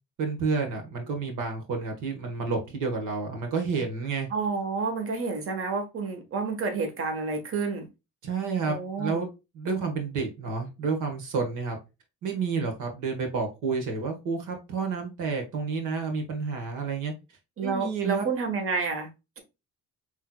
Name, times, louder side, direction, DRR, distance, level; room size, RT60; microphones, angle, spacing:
voice 1, 0.2-4.3 8.2-9.3 9.5-11.8 12.2-17.1 17.6-18.2, right 4 dB, 85° right, 1.4 m, -30 dB
voice 2, 4.3-7.9 8.7-9.2 17.6-19.1, right 4 dB, 45° right, 1.3 m, -29 dB
5.6 x 3.2 x 2.2 m
cardioid pair, 90°, 30 cm